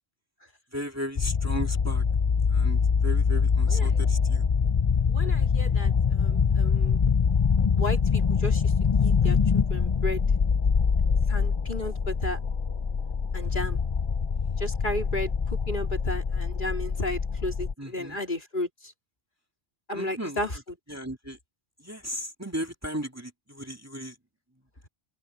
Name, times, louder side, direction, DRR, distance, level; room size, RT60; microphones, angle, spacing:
voice 1, 0.7-2.1 2.5-4.5 17.8-18.2 19.9-20.5 20.9-21.4 21.8-24.2, equal, 15° right, 2.4 m, -36 dB
sound 1, 1.2-17.7, left 6 dB, 35° left, 0.5 m, -24 dB
voice 2, 3.7-4.0 5.1-7.0 7.7-8.7 9.0-10.2 11.3-12.4 13.3-13.8 14.6-18.9 19.9-20.6, left 1 dB, 50° left, 3.6 m, -33 dB
open air
omnidirectional pair, 1.0 m